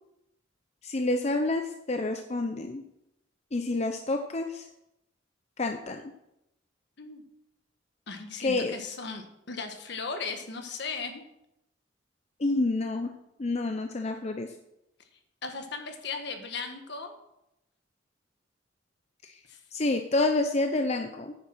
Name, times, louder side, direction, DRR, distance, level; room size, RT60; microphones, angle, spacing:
voice 1, 0.8-2.8 3.5-4.7 5.6-6.0 8.4-8.7 12.4-13.1 13.4-14.5 19.7-21.3, left 2 dB, 35° left, 5 dB, 0.7 m, -28 dB
voice 2, 8.1-11.2 15.4-17.1 19.5-19.6, left 4 dB, 65° left, 5 dB, 1.6 m, -37 dB
9.4 x 7.3 x 6.2 m, 0.84 s
head